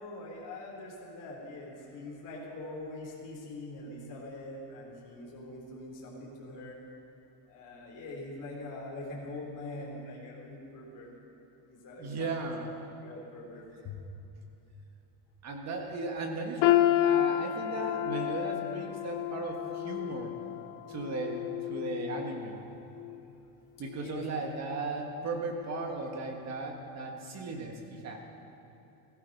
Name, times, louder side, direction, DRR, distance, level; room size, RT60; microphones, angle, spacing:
voice 1, 0.0-6.8 7.5-11.1 11.7-12.7 13.0-14.0 24.0-24.3, left 2 dB, 40° left, -3 dB, 3.6 m, -43 dB
voice 2, 12.0-12.7 15.4-20.3 20.9-21.4 21.7-22.6 23.8-28.2, right 3 dB, 30° right, 2 dB, 1.8 m, -36 dB
sound 1, 16.6-22.6 23.0-23.2 23.9-24.0, left 13 dB, 60° left, 0.7 m, -30 dB
16.5 x 15.0 x 5.5 m, 3.0 s
cardioid pair, 170°, 49 cm